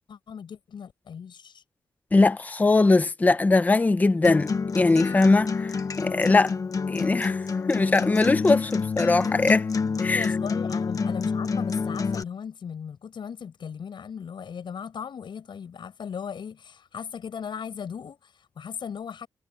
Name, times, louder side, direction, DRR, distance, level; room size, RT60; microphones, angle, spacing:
voice 1, 0.1-1.6 9.6-19.3, left 7 dB, 65° left, 7.8 m, -37 dB
voice 2, 2.1-6.5 6.9-7.4 7.7-9.7 10.0-10.3, left 3 dB, 20° left, 0.7 m, -21 dB
Acoustic guitar, 4.2-12.2, left 5 dB, 40° left, 1.2 m, -28 dB
wide cardioid pair, 155°, 9 cm